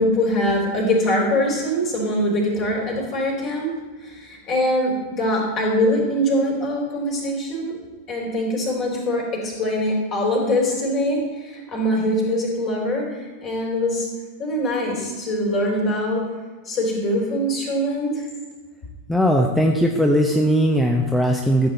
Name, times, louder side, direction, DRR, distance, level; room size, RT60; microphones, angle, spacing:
voice 1, 0.0-3.7 4.0-7.7 8.1-14.1 14.4-16.2 16.7-18.3, left 1 dB, 35° left, -1 dB, 4.0 m, -23 dB
voice 2, 19.1-21.7, equal, 5° left, 1 dB, 0.9 m, -19 dB
13.5 x 7.9 x 4.2 m, 1.4 s
figure-of-eight pair, 90°, 0 cm